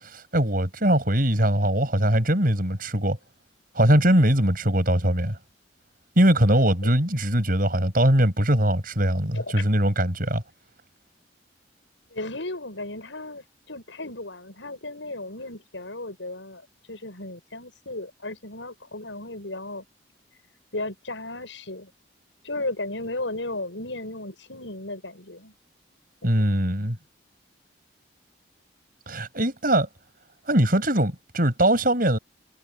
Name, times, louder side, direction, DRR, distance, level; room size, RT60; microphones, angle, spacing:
voice 1, 0.1-3.2 3.8-5.4 6.2-10.4 26.2-27.0 29.1-29.9 30.5-32.2, right 1 dB, 50° right, 7.1 m, -21 dB
voice 2, 12.1-16.6 16.9-19.8 20.7-21.9 22.4-25.5 26.3-26.4, left 2 dB, 80° left, 7.3 m, -35 dB
head